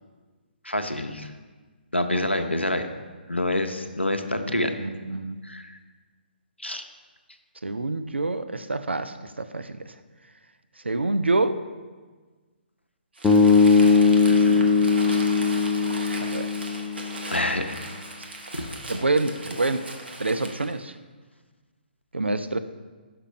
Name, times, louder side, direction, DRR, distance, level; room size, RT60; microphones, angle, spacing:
voice 1, 0.6-1.3 1.9-2.9 3.3-4.8 5.4-5.8 6.6-6.8 14.3-14.7 15.0-15.2 17.3-17.8 18.5-19.0, left 1 dB, 90° left, 7 dB, 0.5 m, -27 dB
voice 2, 4.6-5.4 7.6-9.9 10.8-11.6 15.9-16.5 18.2-18.3 18.9-19.8 20.2-20.9 22.1-22.6, right 2 dB, 80° right, 10 dB, 0.3 m, -27 dB
Crumpling crinkling, 13.1-20.7, right 2 dB, 65° right, 1.2 m, -38 dB
sound 1, 13.2-17.4, left 4 dB, 10° left, 0.3 m, -19 dB
5.9 x 5.0 x 5.2 m, 1.4 s
figure-of-eight pair, 135°, 6 cm